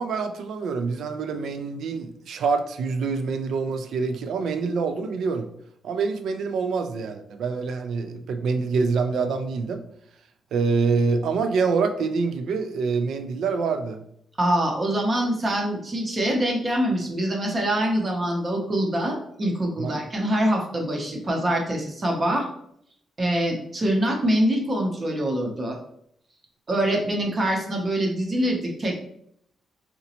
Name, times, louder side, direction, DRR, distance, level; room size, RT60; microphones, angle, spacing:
voice 1, 0.0-5.5 5.8-9.8 10.5-14.0 19.8-19.9, right 4 dB, 65° right, 8 dB, 0.3 m, -26 dB
voice 2, 14.4-22.5 23.2-25.8 26.7-28.9, right 1 dB, 25° right, 1 dB, 0.6 m, -24 dB
3.8 x 2.1 x 2.8 m, 0.70 s
wide cardioid pair, 175°, 0 cm